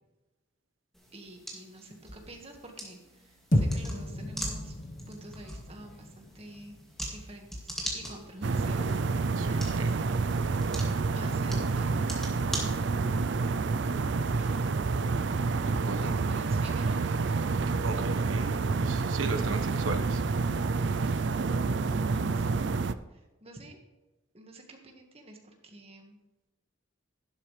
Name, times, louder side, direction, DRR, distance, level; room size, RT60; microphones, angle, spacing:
sound 1, 0.9-13.3, equal, ahead, 2.2 m, -42 dB
voice 1, 1.1-4.7 5.1-6.8 7.1-9.9 11.1-12.7 13.9-14.9 15.8-17.0 20.9-21.3 21.8-22.5 23.1-23.8 24.3-26.2, right 1 dB, 30° right, 2 dB, 1.7 m, -48 dB
sound 2, 3.5-7.9, left 1 dB, 40° left, 1.2 m, -33 dB
sound 3, 8.4-22.9, right 4 dB, 60° right, 0.4 m, -28 dB
voice 2, 9.4-9.9 15.7-16.2 17.8-20.2, right 3 dB, 85° right, 6 dB, 1.3 m, -37 dB
12.0 x 11.5 x 3.3 m, 1.2 s
head